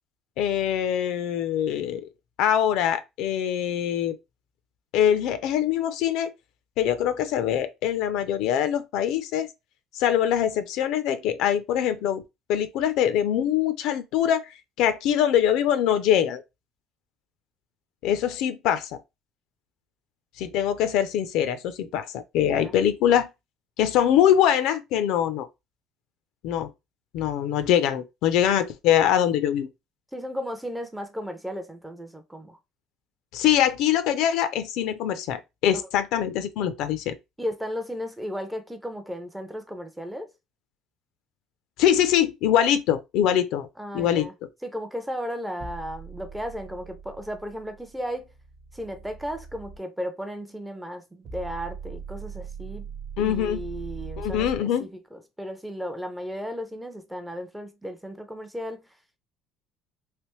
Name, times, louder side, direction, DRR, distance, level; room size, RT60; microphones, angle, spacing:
voice 1, 0.4-2.1 2.4-4.2 4.9-6.3 6.8-9.5 9.9-12.2 12.5-14.5 14.8-16.4 18.0-18.9 20.4-23.3 23.8-25.5 26.4-26.7 27.1-29.7 33.3-37.1 41.8-43.7 43.9-44.3 53.2-53.6 54.2-54.8, left 10 dB, 65° left, 0.4 m, -23 dB
voice 2, 22.4-22.7 30.1-32.6 37.4-40.3 43.8-44.3 44.6-48.3 48.7-52.9 53.2-58.9, equal, 5° right, 0.5 m, -35 dB
sound 1, 45.6-49.8 51.2-54.6, right 5 dB, 45° right, 0.9 m, -40 dB
3.3 x 3.0 x 3.0 m
cardioid pair, 160°, 0 cm